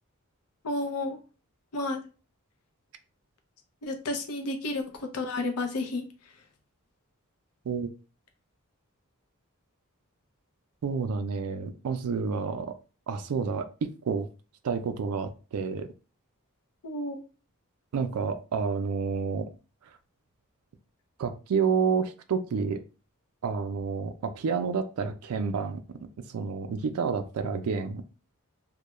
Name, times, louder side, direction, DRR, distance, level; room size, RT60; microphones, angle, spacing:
voice 1, 0.6-1.2 1.7-2.0 3.8-6.0 16.8-17.2, left 2 dB, 85° left, 5 dB, 0.6 m, -31 dB
voice 2, 10.8-12.7 13.1-14.3 14.6-15.9 17.9-19.5 21.2-22.8 23.4-25.8 26.3-28.0, right 5 dB, 75° right, 9 dB, 0.4 m, -29 dB
2.3 x 2.1 x 2.9 m, 0.34 s
head